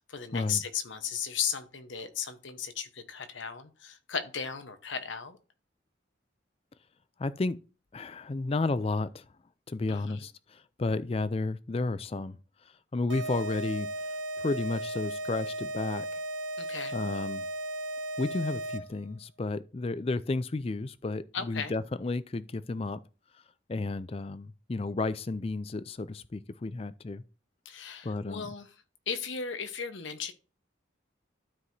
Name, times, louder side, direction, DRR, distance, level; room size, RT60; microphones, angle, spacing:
voice 1, 0.0-5.4 9.9-10.2 16.6-17.0 21.3-21.7 27.6-28.7 29.1-30.3, left 7 dB, 80° left, 1.1 m, -36 dB
voice 2, 7.2-7.6 7.9-9.2 9.7-12.4 12.9-13.9 14.4-16.2 16.9-17.5 18.2-23.0 23.7-27.2 28.0-28.5, left 3 dB, 30° left, 0.4 m, -32 dB
sound 1, 13.1-19.1, right 1 dB, 85° right, 0.8 m, -36 dB
12.5 x 4.7 x 2.7 m
head